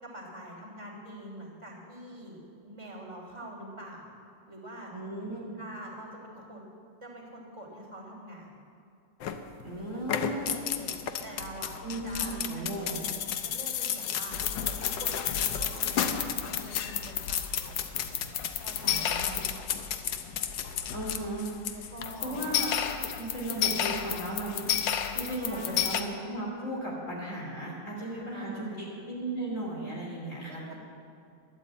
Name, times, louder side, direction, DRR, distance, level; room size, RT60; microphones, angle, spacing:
voice 1, 0.0-4.1 4.5-4.9 5.6-6.6 7.0-8.6 9.7-10.0 10.3-13.0 13.4-14.4 14.8-19.7 21.7-22.4 25.4-25.9 28.1-28.8 30.5-30.7, right 1 dB, 15° right, -4 dB, 3.3 m, -45 dB
voice 2, 4.9-5.4 9.6-10.5 11.8-13.0 18.8-19.5 20.9-21.9 22.2-22.7 23.2-30.7, right 1 dB, 45° left, -5 dB, 3.3 m, -36 dB
sound 1, 9.2-9.7 10.0-26.0, left 9 dB, 85° left, 1.5 m, -31 dB
12.5 x 10.5 x 8.3 m, 2.4 s
omnidirectional pair, 1.9 m